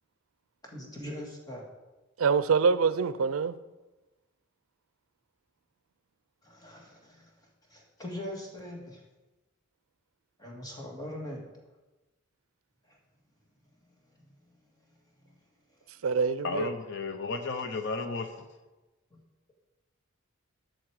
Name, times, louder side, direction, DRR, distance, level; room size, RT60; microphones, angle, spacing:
voice 1, 0.6-1.6 6.4-7.3 7.7-9.0 10.4-11.5 12.9-13.0 19.1-19.2, left 1 dB, 20° left, 2.0 m, -41 dB
voice 2, 2.2-3.6 16.0-16.7, right 5 dB, 85° right, 0.5 m, -25 dB
voice 3, 16.4-18.4, left 3 dB, 60° left, 0.7 m, -33 dB
11.5 x 6.4 x 4.8 m
head